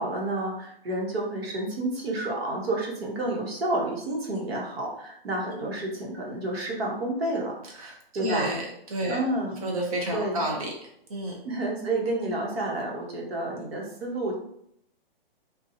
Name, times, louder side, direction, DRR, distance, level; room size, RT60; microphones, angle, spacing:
voice 1, 0.0-7.5 8.1-8.5 9.1-9.6 10.1-10.5 11.4-14.4, right 2 dB, 80° right, -1 dB, 1.0 m, -30 dB
voice 2, 7.7-9.2 9.6-10.7 11.1-11.4, right 1 dB, 35° right, -1 dB, 0.7 m, -30 dB
2.6 x 2.3 x 2.7 m, 0.73 s
hypercardioid pair, 170°, 30 cm